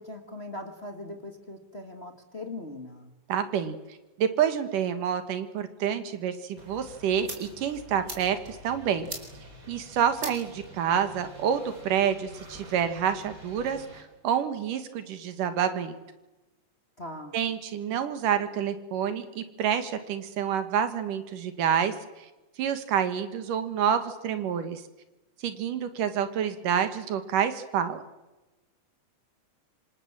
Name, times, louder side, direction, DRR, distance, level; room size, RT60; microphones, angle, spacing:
voice 1, 0.0-3.1 17.0-17.4, left 2 dB, 20° left, 5 dB, 1.9 m, -40 dB
voice 2, 3.3-3.8 4.2-9.1 9.7-15.9 17.3-22.3 22.6-24.8 25.4-28.0, right 8 dB, 80° right, 10 dB, 3.2 m, -28 dB
sound 1, 6.6-14.0, right 1 dB, 25° right, 4.6 m, -44 dB
26.5 x 26.0 x 7.5 m, 1.1 s
omnidirectional pair, 3.7 m